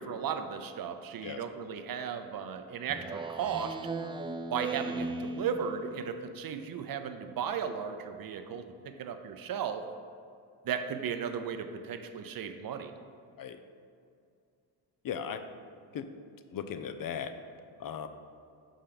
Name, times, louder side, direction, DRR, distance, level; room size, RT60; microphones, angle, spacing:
voice 1, 0.0-3.8 4.5-9.8 10.6-12.9, right 7 dB, 45° right, 8 dB, 0.7 m, -35 dB
Speech synthesizer, 2.9-5.9, right 3 dB, 10° right, 0.3 m, -37 dB
voice 2, 15.0-15.4 15.9-16.1 16.5-17.3 17.8-18.1, left 8 dB, 45° left, 9 dB, 0.6 m, -37 dB
5.5 x 5.1 x 5.9 m, 2.4 s
supercardioid pair, 70°, 48 cm